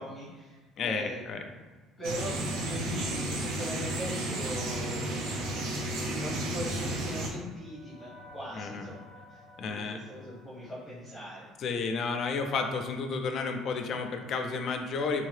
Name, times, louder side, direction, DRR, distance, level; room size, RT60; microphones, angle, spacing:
voice 1, 0.0-1.2 2.0-5.4 5.7-9.0 9.3-11.5, left 1 dB, ahead, -11 dB, 0.9 m, -40 dB
voice 2, 0.8-1.4 8.5-8.9 9.6-10.0 11.6-15.3, left 4 dB, 35° left, 5 dB, 0.3 m, -32 dB
sound 1, 2.0-7.3, right 1 dB, 65° right, 0.6 m, -33 dB
sound 2, 6.7-11.8, left 1 dB, 35° right, 1.4 m, -54 dB
3.7 x 2.7 x 3.2 m, 1.3 s
cardioid pair, 180°, 0 cm